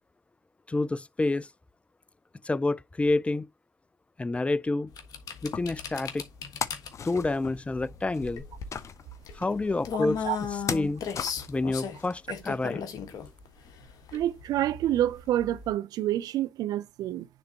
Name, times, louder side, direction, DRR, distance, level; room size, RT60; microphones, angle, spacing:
voice 1, 0.7-1.5 2.4-3.5 4.2-4.9 5.4-6.2 7.0-8.4 9.3-10.3 10.5-11.0 11.5-12.9, left 2 dB, 15° left, 0.4 m, -28 dB
sound 1, 4.9-15.7, left 7 dB, 60° left, 1.3 m, -37 dB
sound 2, 5.3-12.4, left 7 dB, 45° left, 0.7 m, -38 dB
voice 2, 14.1-17.3, right 12 dB, 65° right, 0.5 m, -28 dB
9.8 x 3.6 x 2.8 m
hypercardioid pair, 55°, 7 cm